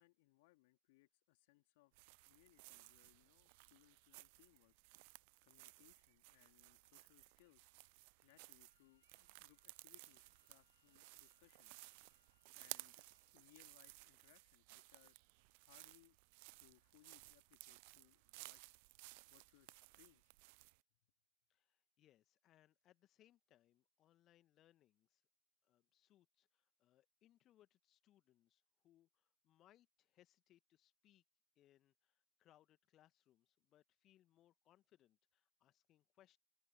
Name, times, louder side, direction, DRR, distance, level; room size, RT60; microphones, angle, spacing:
voice 1, 0.0-1.9 2.2-4.7 5.4-7.7 8.2-11.7 12.5-15.2 15.6-16.2 16.6-18.6 19.3-20.3, left 22 dB, 50° left, 3.2 m, -71 dB
sound 1, 1.9-20.8, right 30 dB, 45° right, 0.3 m, -59 dB
Wind instrument woodwind instrument, 8.6-13.5, left 8 dB, 65° left, 2.6 m, -83 dB
voice 2, 21.5-25.2 25.6-31.2 31.5-36.4, left 13 dB, 30° left, 1.5 m, -73 dB
open air
figure-of-eight pair, 90°, 0 cm